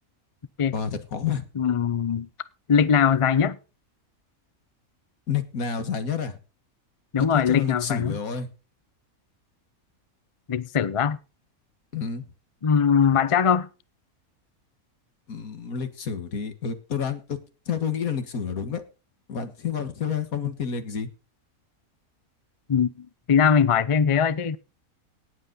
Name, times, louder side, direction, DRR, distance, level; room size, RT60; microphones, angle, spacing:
voice 1, 0.7-1.5 5.3-6.4 7.2-8.5 11.9-12.3 15.3-17.4 17.7-18.8 19.3-21.1, left 7 dB, 75° left, 2.0 m, -29 dB
voice 2, 1.6-2.3 2.7-3.6 7.1-8.2 10.5-11.2 12.6-13.7 22.7-24.6, left 7 dB, 50° left, 0.4 m, -21 dB
18.0 x 8.0 x 4.0 m
omnidirectional pair, 1.5 m